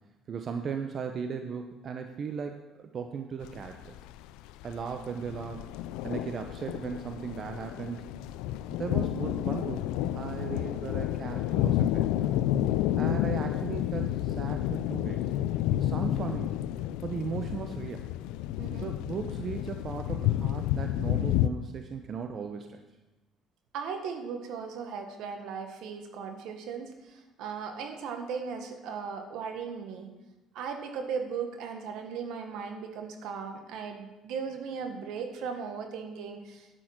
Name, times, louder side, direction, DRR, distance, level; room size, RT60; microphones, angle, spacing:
voice 1, 0.3-3.9 4.6-5.6 6.0-8.1 8.8-12.4 13.0-15.2 15.8-16.5 17.0-18.1 18.8-22.8, right 6 dB, 50° right, 6 dB, 0.8 m, -37 dB
sound 1, 3.4-21.5, left 13 dB, 85° left, 0.4 m, -30 dB
voice 2, 18.6-18.9 23.7-30.1 30.5-36.8, right 6 dB, 75° right, 5 dB, 1.6 m, -37 dB
9.0 x 8.7 x 5.9 m, 1.1 s
supercardioid pair, 80°, 0 cm